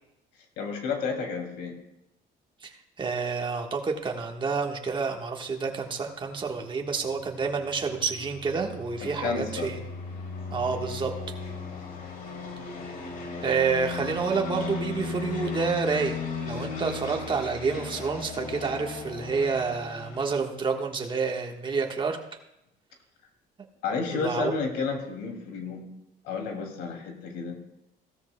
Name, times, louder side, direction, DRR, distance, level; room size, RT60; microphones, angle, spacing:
voice 1, 0.6-1.7 9.0-9.7 23.8-25.9 26.2-27.6, left 5 dB, 85° left, 3 dB, 2.6 m, -31 dB
voice 2, 3.0-9.8 10.5-11.1 13.4-16.2 16.5-22.2 24.1-24.6, right 5 dB, 30° right, 2 dB, 1.4 m, -29 dB
sound 1, 7.0-20.3, left 4 dB, 55° left, 2.8 m, -36 dB
16.0 x 13.5 x 2.2 m, 0.84 s
cardioid pair, 110°, 17 cm